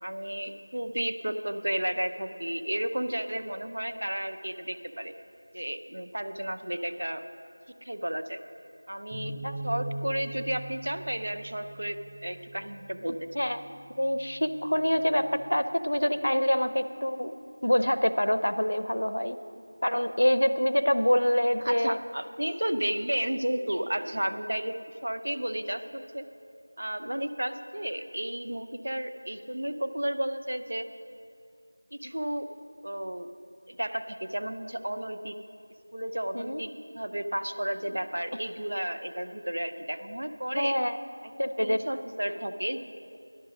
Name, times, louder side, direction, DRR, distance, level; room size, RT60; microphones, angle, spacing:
voice 1, 0.0-5.1 5.5-7.2 7.8-8.4 8.9-9.3 9.6-13.3 21.6-26.3 26.8-30.9 31.9-32.5 32.8-33.3 33.7-35.4 35.9-40.8 41.4-42.8, right 1 dB, 60° right, 9 dB, 0.6 m, -32 dB
sound 1, 9.1-15.4, right 1 dB, 15° right, 2.6 m, -41 dB
voice 2, 13.9-17.3 17.6-19.4 19.8-22.0 36.3-36.6 40.5-41.0 41.4-41.8, equal, 75° left, 12 dB, 0.6 m, -25 dB
12.0 x 11.0 x 5.1 m, 2.5 s
figure-of-eight pair, 175°, 0 cm